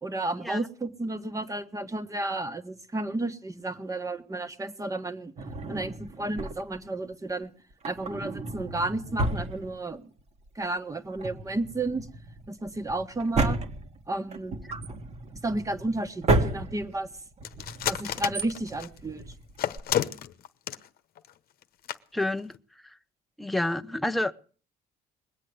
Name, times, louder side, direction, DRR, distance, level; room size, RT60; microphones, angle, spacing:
voice 1, 0.0-5.3 5.7-7.5 7.8-10.1 10.5-12.1 12.5-13.6 14.1-14.5 15.4-17.1 17.9-19.2, right 2 dB, 20° right, 1.5 m, -32 dB
Drawer open or close, 5.4-6.9 7.7-10.2 10.5-10.6 11.0-19.8, right 2 dB, 40° right, 1.7 m, -32 dB
sound 1, 17.4-19.0 19.6-20.9 21.2-21.3 21.6-21.7 21.9-22.0 22.4-22.6, left 11 dB, 60° left, 1.0 m, -30 dB
voice 2, 22.1-22.5 22.8-23.0 23.4-24.3, left 1 dB, ahead, 0.7 m, -28 dB
21.0 x 8.3 x 8.0 m
cardioid pair, 110°, 17 cm